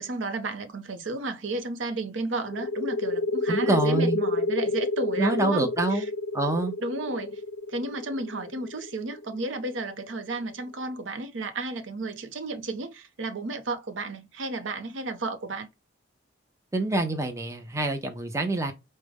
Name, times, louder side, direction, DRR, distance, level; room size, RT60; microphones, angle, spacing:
voice 1, 0.0-6.1 6.8-7.4 7.7-15.7, right 2 dB, 85° right, 0.7 m, -33 dB
sound 1, 2.5-9.9, left 2 dB, 45° left, 0.4 m, -29 dB
voice 2, 3.5-4.2 5.2-6.1 6.3-6.7 16.7-18.7, right 2 dB, 15° right, 0.6 m, -26 dB
4.8 x 2.1 x 3.4 m
head